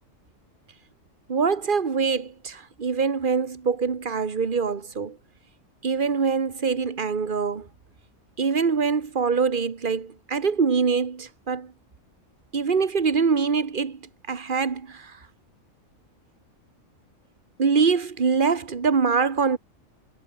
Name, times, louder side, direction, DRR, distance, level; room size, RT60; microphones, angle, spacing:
voice 1, 1.3-5.2 5.8-7.7 8.4-11.7 12.5-14.0 14.3-15.1 17.6-19.6, right 5 dB, 40° right, 1.5 m, -24 dB
omnidirectional pair, 1.4 m